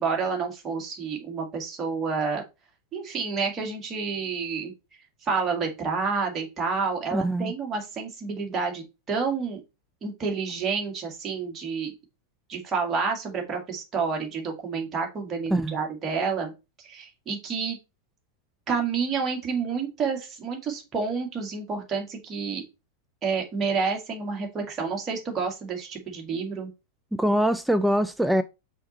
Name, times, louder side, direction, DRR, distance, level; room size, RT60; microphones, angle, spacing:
voice 1, 0.0-2.4 2.9-4.7 5.2-9.6 10.0-11.9 12.5-16.5 16.8-17.8 18.7-22.7 23.2-26.7, right 5 dB, 25° right, 1.9 m, -29 dB
voice 2, 7.1-7.5 15.5-15.8 27.2-28.4, right 1 dB, 5° right, 0.4 m, -23 dB
5.6 x 4.2 x 4.1 m
figure-of-eight pair, 90°, 0 cm